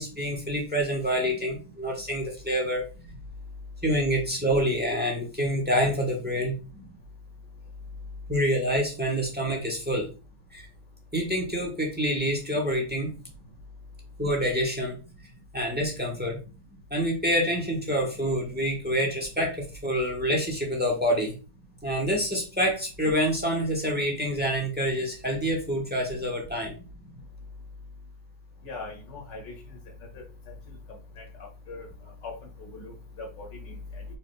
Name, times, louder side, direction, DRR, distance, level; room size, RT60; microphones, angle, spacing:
voice 1, 0.0-2.9 3.8-6.6 8.3-10.1 10.5-10.7 11.1-13.1 14.2-15.0 15.5-16.4 16.9-21.4 21.8-26.7, equal, 5° right, 0 dB, 1.0 m, -27 dB
voice 2, 28.6-29.5 30.1-30.2 31.2-31.3 31.7-31.9 32.2-32.3 32.6-34.0, left 3 dB, 75° left, 0 dB, 2.3 m, -40 dB
4.9 x 4.1 x 2.2 m, 0.33 s
omnidirectional pair, 1.9 m